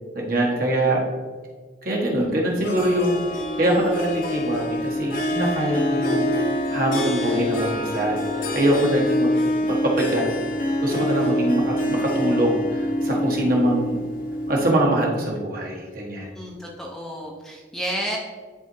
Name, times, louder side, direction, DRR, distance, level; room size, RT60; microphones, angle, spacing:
voice 1, 0.1-1.0 1.8-3.2 3.6-6.3 6.7-10.2 10.8-14.0 14.5-16.3, right 1 dB, 50° right, -2 dB, 1.4 m, -23 dB
Harp, 2.6-14.8, left 1 dB, 50° left, 1.0 m, -25 dB
voice 2, 16.3-18.2, equal, ahead, -2 dB, 0.7 m, -31 dB
11.0 x 4.2 x 2.7 m, 1.5 s
head